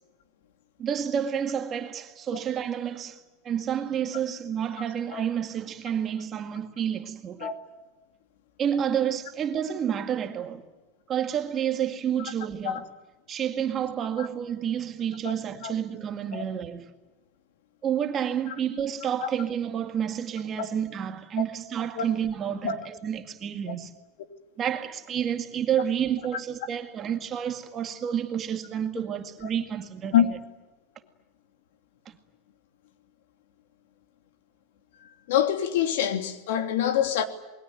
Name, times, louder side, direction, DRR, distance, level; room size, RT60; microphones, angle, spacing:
voice 1, 0.8-7.5 8.6-10.7 11.1-12.9 13.3-16.9 17.8-23.9 24.6-30.4 32.1-32.2, right 9 dB, 25° right, 2.0 m, -29 dB
voice 2, 35.3-37.2, left 9 dB, 80° left, 2.9 m, -25 dB
27.5 x 22.0 x 9.2 m
supercardioid pair, 165°, 0 cm